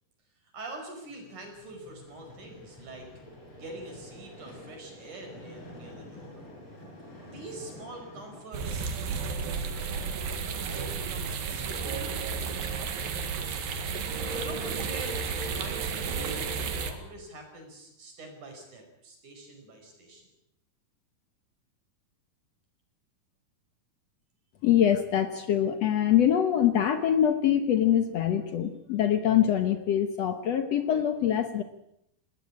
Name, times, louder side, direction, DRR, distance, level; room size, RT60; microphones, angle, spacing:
voice 1, 0.4-3.1 3.6-6.4 7.2-10.1 10.5-13.6 14.3-20.3, right 2 dB, 50° right, 4 dB, 6.5 m, -44 dB
Vehicle, 1.1-17.4, left 1 dB, 30° left, 6.1 m, -51 dB
sound 1, 8.5-16.9, right 5 dB, 65° right, 3.5 m, -32 dB
voice 2, 24.6-31.6, left 10 dB, 70° left, 9 dB, 1.5 m, -24 dB
20.0 x 19.0 x 8.6 m, 0.79 s
omnidirectional pair, 4.5 m